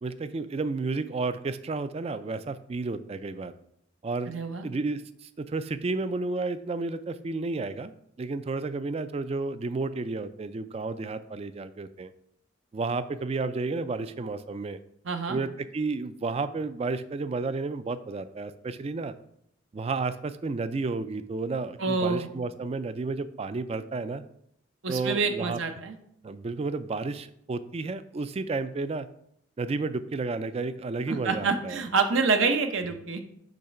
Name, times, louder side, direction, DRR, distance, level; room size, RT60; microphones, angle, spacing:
voice 1, 0.0-3.5 4.0-4.3 4.6-7.9 8.2-12.1 12.7-14.8 15.3-19.1 19.7-24.2 24.9-25.6 26.2-29.1 29.6-31.8, right 3 dB, 30° right, 13 dB, 0.3 m, -32 dB
voice 2, 4.3-4.6 15.0-15.4 21.8-22.3 24.8-25.9 31.1-33.2, right 4 dB, 75° right, 6 dB, 0.7 m, -27 dB
6.5 x 3.2 x 5.7 m, 0.72 s
head